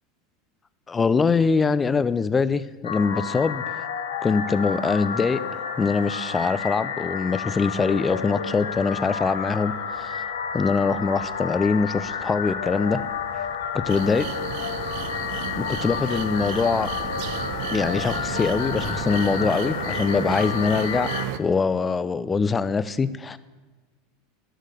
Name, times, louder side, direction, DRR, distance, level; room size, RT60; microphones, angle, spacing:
voice 1, 0.9-3.9 4.2-5.4 5.8-10.2 10.5-13.0 13.7-14.3 15.6-16.9 17.7-21.1 21.4-23.4, left 4 dB, 20° left, 15 dB, 0.6 m, -23 dB
sound 1, 2.8-21.3, left 7 dB, 85° left, 0.8 m, -31 dB
Gull seagull / Waves surf / Siren, 4.6-19.3, right 2 dB, 80° right, 1.9 m, -43 dB
sound 2, 13.9-21.4, right 12 dB, 65° right, 0.6 m, -34 dB
11.5 x 6.5 x 6.7 m, 1.3 s
hypercardioid pair, 95°, 0 cm